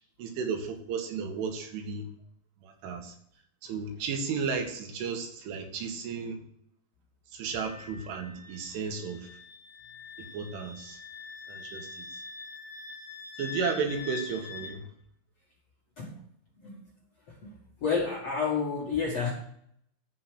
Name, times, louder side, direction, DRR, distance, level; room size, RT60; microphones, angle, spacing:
voice 1, 0.2-2.1 2.6-3.1 3.6-6.4 7.3-9.3 10.2-11.0 11.5-12.1 13.4-14.8, right 5 dB, 80° right, 4 dB, 4.3 m, -34 dB
Wind instrument woodwind instrument, 7.5-14.8, left 5 dB, 15° left, 5.4 m, -44 dB
voice 2, 17.8-19.3, left 5 dB, 55° left, -3 dB, 1.9 m, -30 dB
14.0 x 6.2 x 6.4 m, 0.67 s
omnidirectional pair, 5.6 m